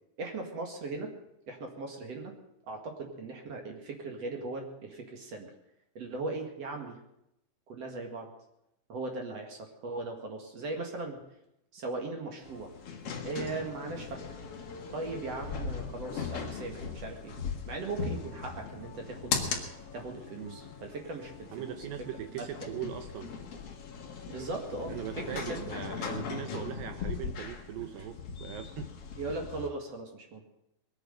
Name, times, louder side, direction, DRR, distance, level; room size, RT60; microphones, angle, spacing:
voice 1, 0.2-1.1 1.5-2.3 2.7-5.5 6.0-7.0 7.7-8.3 8.9-11.2 11.7-12.7 13.2-14.4 14.9-17.3 17.7-19.5 19.9-21.7 22.4-22.5 24.3-25.6 27.8-28.0 29.2-30.4, right 3 dB, 50° right, 2 dB, 2.4 m, -38 dB
sound 1, 12.4-29.7, left 5 dB, 50° left, 1.9 m, -39 dB
voice 2, 21.5-23.3 24.9-28.9, right 10 dB, 75° right, 8 dB, 2.1 m, -40 dB
21.0 x 9.4 x 6.6 m, 0.82 s
omnidirectional pair, 4.9 m